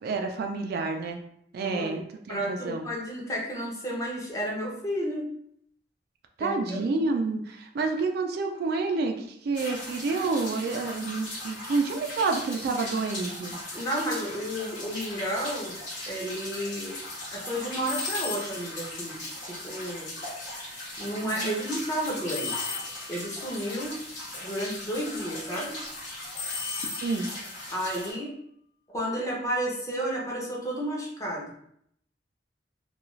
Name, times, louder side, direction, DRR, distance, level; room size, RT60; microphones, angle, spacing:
voice 1, 0.0-1.2 1.5-2.0 2.3-2.8 6.4-13.6 21.2-21.6 26.7-27.3, right 3 dB, 55° right, 4 dB, 0.3 m, -29 dB
voice 2, 1.6-2.0 2.3-5.3 6.4-6.9 13.7-15.8 16.1-17.0 17.3-20.1 21.0-22.7 23.1-24.0 24.4-25.8 27.7-28.4 28.9-31.5, equal, 20° left, -3 dB, 0.6 m, -32 dB
sound 1, 9.5-28.1, left 1 dB, 85° left, 1.1 m, -38 dB
sound 2, 17.9-18.8 22.3-23.3 26.3-27.5, left 5 dB, 65° left, 0.9 m, -35 dB
2.4 x 2.3 x 3.0 m, 0.69 s
head